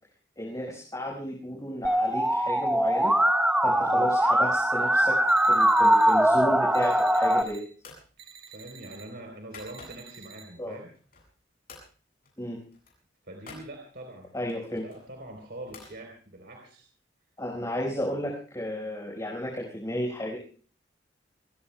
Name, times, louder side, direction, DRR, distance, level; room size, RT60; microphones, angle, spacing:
voice 1, 0.4-3.1 3.6-7.6 10.6-10.8 12.4-12.6 14.3-14.8 17.4-20.4, equal, 20° left, -2 dB, 4.8 m, -33 dB
Musical instrument, 1.8-7.4, right 1 dB, 5° right, 0.9 m, -22 dB
voice 2, 3.6-4.1 8.5-10.9 13.2-14.3 14.8-16.8, right 1 dB, 65° right, 2 dB, 3.8 m, -43 dB
sound 1, 5.3-6.1 6.7-7.6 8.2-9.0 9.6-10.4, right 7 dB, 80° right, 2.6 m, -49 dB
sound 2, 7.0-7.3 7.8-8.1 8.5-10.2 10.7-11.4 11.7-11.9 12.2-12.4 12.6-13.7 14.5-16.0, left 4 dB, 55° left, 7.7 m, -50 dB
29.0 x 20.0 x 2.3 m, 0.42 s
head